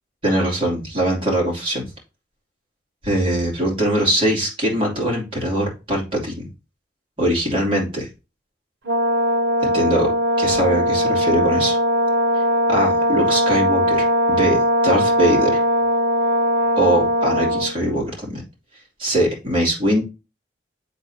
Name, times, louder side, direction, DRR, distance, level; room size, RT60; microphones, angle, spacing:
voice 1, 0.2-1.9 3.0-6.5 7.2-8.1 9.6-10.1 10.4-11.8 12.7-14.6 14.8-15.6 16.8-18.4 19.0-20.0, right 1 dB, 30° right, -3 dB, 2.7 m, -21 dB
Brass instrument, 8.9-17.7, equal, 70° right, 0.8 m, -19 dB
10.0 x 4.0 x 2.8 m, 0.29 s
head